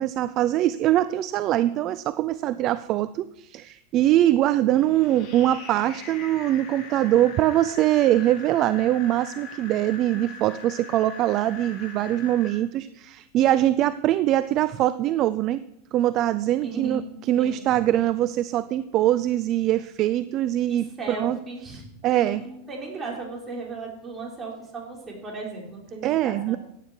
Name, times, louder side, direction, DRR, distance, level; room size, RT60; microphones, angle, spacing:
voice 1, 0.0-15.6 15.9-17.0 17.3-21.4 22.0-22.4 26.0-26.6, right 13 dB, 45° right, 15 dB, 0.5 m, -23 dB
sound 1, 4.8-12.5, left 4 dB, 50° left, 5.1 m, -42 dB
voice 2, 16.6-17.1 17.4-17.8 20.7-26.6, right 3 dB, 25° right, -2 dB, 5.3 m, -36 dB
15.5 x 9.4 x 4.7 m, 0.84 s
hypercardioid pair, 100°, 0 cm